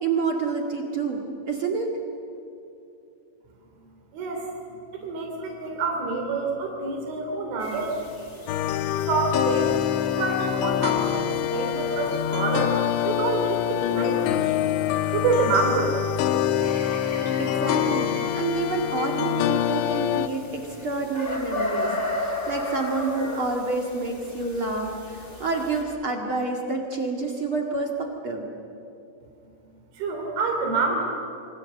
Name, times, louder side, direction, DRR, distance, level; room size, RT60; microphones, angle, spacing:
voice 1, 0.0-1.9 17.4-28.5, right 3 dB, 45° right, 1 dB, 1.8 m, -28 dB
voice 2, 4.1-4.5 4.9-8.0 9.1-9.8 10.1-14.7 15.1-15.9 29.9-31.0, right 4 dB, 85° right, 1 dB, 5.5 m, -27 dB
sound 1, 7.6-25.8, left 1 dB, 20° left, 2.2 m, -36 dB
sound 2, 8.5-20.3, left 11 dB, 80° left, 3.1 m, -25 dB
27.0 x 24.5 x 7.8 m, 2.7 s
omnidirectional pair, 5.3 m